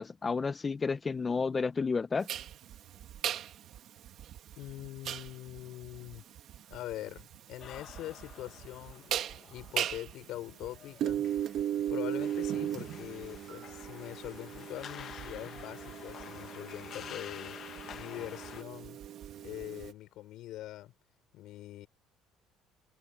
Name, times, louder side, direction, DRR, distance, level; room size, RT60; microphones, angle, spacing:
voice 1, 0.0-2.3, left 4 dB, 20° left, 0.4 m, -31 dB
sound 1, 2.3-19.9, right 11 dB, 45° right, 1.3 m, -38 dB
voice 2, 4.5-6.2 6.7-9.1 9.5-11.2 11.9-17.6 17.9-19.0 19.4-20.9 21.3-21.9, left 15 dB, 60° left, 5.1 m, -43 dB
sound 2, 7.6-18.6, left 9 dB, 40° left, 0.9 m, -49 dB
cardioid pair, 170°, 0 cm